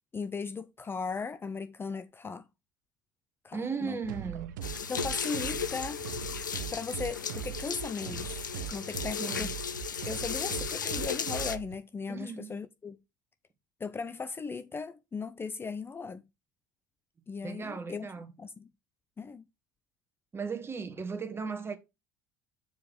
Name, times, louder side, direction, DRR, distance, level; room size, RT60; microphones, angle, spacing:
voice 1, 0.1-2.5 3.4-4.0 4.9-6.0 6.7-8.4 8.7-9.5 10.0-13.0 13.8-16.2 17.3-18.1 18.4-18.7 19.2-19.4, left 5 dB, 25° left, 0.6 m, -37 dB
voice 2, 3.5-4.5 9.2-9.5 12.1-12.5 17.4-18.3 20.3-21.8, right 5 dB, 25° right, 1.9 m, -36 dB
sound 1, 4.0-11.7, right 12 dB, 75° right, 0.6 m, -40 dB
sound 2, 4.6-11.6, left 7 dB, 90° left, 0.6 m, -35 dB
7.2 x 4.5 x 5.0 m
hypercardioid pair, 65°, 10 cm